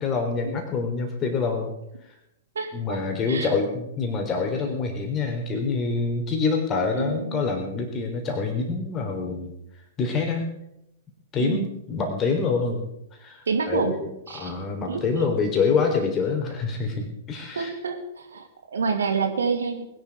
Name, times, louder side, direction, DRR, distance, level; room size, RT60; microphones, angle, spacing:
voice 1, 0.0-1.7 2.7-9.5 10.0-10.5 11.3-14.1 14.3-17.7, left 4 dB, 25° left, 3 dB, 3.9 m, -26 dB
voice 2, 2.5-3.0 3.3-3.5 6.9-7.4 11.4-11.7 13.5-14.0 14.3-14.6 14.9-15.3 17.6-19.8, right 5 dB, 65° right, 6 dB, 2.3 m, -28 dB
21.0 x 11.5 x 4.9 m, 0.81 s
figure-of-eight pair, 105°, 0 cm